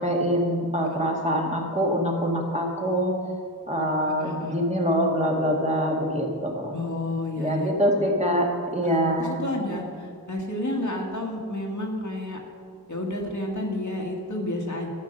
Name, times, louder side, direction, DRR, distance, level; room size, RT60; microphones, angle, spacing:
voice 1, 0.0-3.2 3.7-6.7 7.4-9.3, equal, 20° right, -1 dB, 2.0 m, -24 dB
voice 2, 4.2-4.6 6.7-7.7 8.8-12.4 12.9-14.9, left 1 dB, 55° left, 0 dB, 1.7 m, -30 dB
12.0 x 7.2 x 6.6 m, 2.2 s
wide cardioid pair, 50°, 36 cm